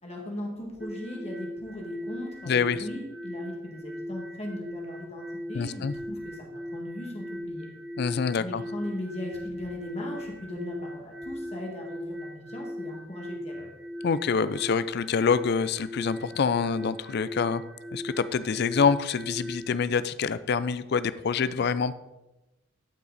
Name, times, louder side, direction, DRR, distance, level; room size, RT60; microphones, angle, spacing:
voice 1, 0.0-7.7 8.4-13.7, left 1 dB, 30° left, -1 dB, 1.8 m, -38 dB
sound 1, 0.8-19.7, equal, 5° right, 0.5 m, -39 dB
voice 2, 2.5-2.8 5.5-5.9 8.0-8.6 14.0-17.6 17.9-21.9, left 5 dB, 50° left, 15 dB, 0.4 m, -26 dB
12.0 x 5.8 x 4.0 m, 1.0 s
head